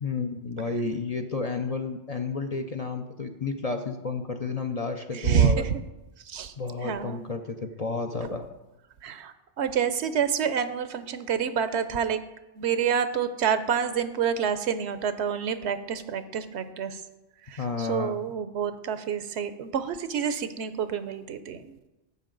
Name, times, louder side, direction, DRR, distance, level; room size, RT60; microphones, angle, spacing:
voice 1, 0.0-5.6 6.6-8.5 17.6-18.1, left 4 dB, 45° left, 5 dB, 0.5 m, -31 dB
voice 2, 5.1-5.8 6.2-6.5 6.8-7.3 9.0-12.2 12.5-17.0 17.5-21.9, right 7 dB, 70° right, 11 dB, 0.9 m, -28 dB
12.0 x 8.2 x 3.9 m, 1.0 s
omnidirectional pair, 1.2 m